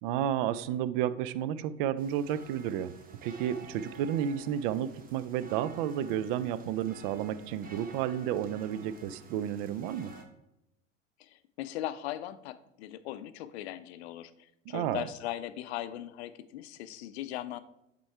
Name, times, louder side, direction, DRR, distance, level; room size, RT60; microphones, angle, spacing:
voice 1, 0.0-2.9 3.2-10.1 14.7-15.1, right 10 dB, 50° right, 15 dB, 0.5 m, -31 dB
sound 1, 2.0-10.2, right 4 dB, 25° right, 1.0 m, -51 dB
voice 2, 11.2-17.6, left 13 dB, 60° left, 13 dB, 0.6 m, -39 dB
7.5 x 3.7 x 4.5 m, 0.85 s
figure-of-eight pair, 80°, 37 cm